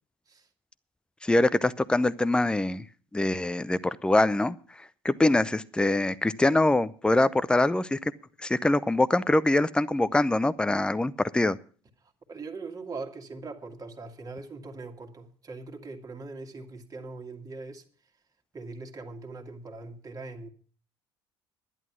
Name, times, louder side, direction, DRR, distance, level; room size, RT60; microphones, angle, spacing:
voice 1, 1.2-2.8 3.1-4.6 5.0-8.1 8.4-11.6, left 2 dB, 5° left, 0.6 m, -24 dB
voice 2, 12.0-17.8 18.5-20.5, right 3 dB, 25° right, 2.0 m, -41 dB
11.0 x 11.0 x 5.9 m
figure-of-eight pair, 60°, 13 cm